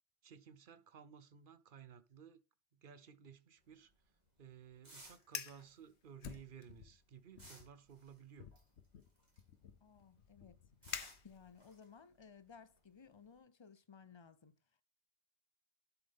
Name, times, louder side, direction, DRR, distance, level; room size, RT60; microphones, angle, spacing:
voice 1, 0.2-2.4 2.7-3.9 4.4-8.5, right 7 dB, 50° right, 0.9 m, -57 dB
sound 1, 3.6-9.7 9.9-13.4, right 1 dB, 35° right, 3.6 m, -62 dB
Fire, 5.2-5.6 6.2-7.0 7.4-7.7 8.4-11.7, left 8 dB, 65° left, 1.1 m, -49 dB
voice 2, 9.8-10.6 11.2-14.5, left 6 dB, 35° left, 0.4 m, -59 dB
11.5 x 7.0 x 3.6 m
omnidirectional pair, 1.2 m